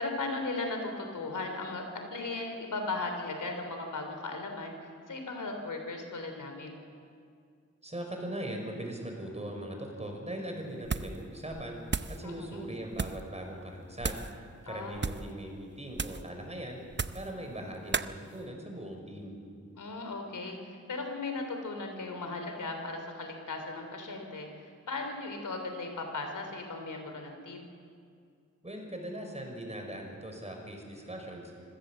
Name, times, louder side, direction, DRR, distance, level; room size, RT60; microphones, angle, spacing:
voice 1, 0.0-6.8 12.2-12.7 14.6-15.1 19.8-27.7, left 3 dB, 80° left, 4 dB, 3.5 m, -37 dB
voice 2, 7.8-11.8 12.1-14.2 14.6-16.8 17.1-19.4 28.6-31.5, right 1 dB, 20° right, 2 dB, 5.9 m, -40 dB
sound 1, 10.8-11.2 11.5-12.2 12.9-13.3 14.0-14.3 14.9-15.3 15.9-16.3 16.9-17.3 17.9-18.1, right 5 dB, 35° right, 0.7 m, -34 dB
25.5 x 15.5 x 7.6 m, 2.2 s
cardioid pair, 50°, 31 cm